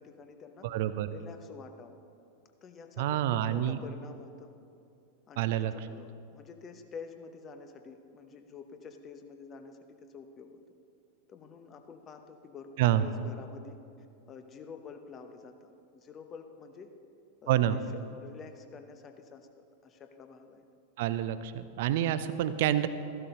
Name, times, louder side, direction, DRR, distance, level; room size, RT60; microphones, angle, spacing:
voice 1, 0.0-0.7 1.1-2.0 2.6-4.5 5.3-10.6 11.3-13.8 14.3-16.9 17.4-19.5 19.8-20.6 22.2-22.4, left 5 dB, 25° left, 7 dB, 1.0 m, -48 dB
voice 2, 0.6-1.1 3.0-3.8 5.4-5.7 12.8-13.1 17.5-17.8 21.0-22.9, right 12 dB, 50° right, 13 dB, 0.6 m, -27 dB
15.0 x 12.0 x 3.8 m, 2.6 s
figure-of-eight pair, 90°, 0 cm